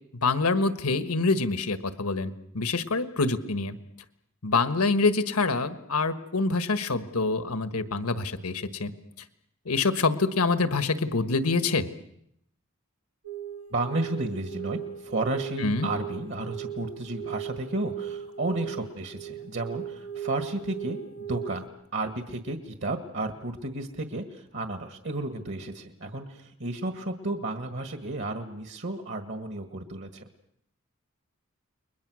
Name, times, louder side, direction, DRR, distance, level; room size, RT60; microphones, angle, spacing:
voice 1, 0.2-3.8 4.4-8.9 9.6-11.9 15.6-15.9, left 3 dB, 85° left, 10 dB, 1.4 m, -26 dB
sound 1, 13.2-21.7, right 9 dB, 85° right, 1.6 m, -37 dB
voice 2, 13.7-21.6 21.9-30.2, right 2 dB, 55° right, 6 dB, 1.8 m, -32 dB
30.0 x 22.0 x 6.3 m, 0.73 s
head